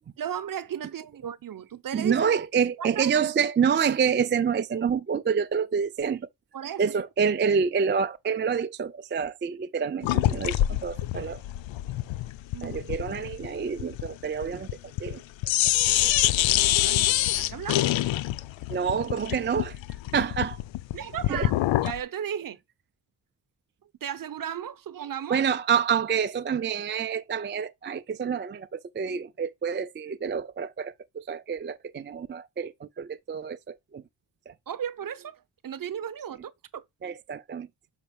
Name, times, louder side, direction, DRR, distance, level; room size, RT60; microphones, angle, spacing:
voice 1, 0.2-2.3 2.8-3.1 6.5-6.8 12.5-12.8 16.6-17.9 20.9-21.5 21.8-22.6 24.0-25.4 34.7-36.8, right 9 dB, 50° right, 0.8 m, -35 dB
voice 2, 1.9-6.3 6.8-11.4 12.6-15.7 18.7-19.8 20.1-20.6 21.3-21.5 25.3-34.0 34.5-34.6 37.0-37.7, right 6 dB, 25° right, 0.4 m, -27 dB
sound 1, 10.0-15.2 15.4-22.0, left 14 dB, 85° left, 0.5 m, -26 dB
6.2 x 5.7 x 5.2 m
wide cardioid pair, 140°, 45 cm